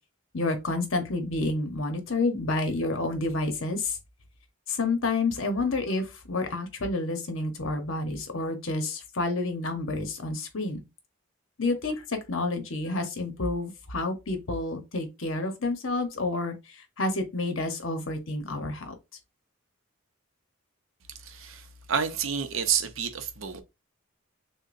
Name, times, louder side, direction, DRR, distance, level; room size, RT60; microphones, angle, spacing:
voice 1, 0.3-4.0 4.7-10.8 11.6-18.9, left 2 dB, 65° left, 1.0 m, -29 dB
voice 2, 21.2-23.6, right 7 dB, 70° right, 0.7 m, -29 dB
6.4 x 2.2 x 2.6 m
head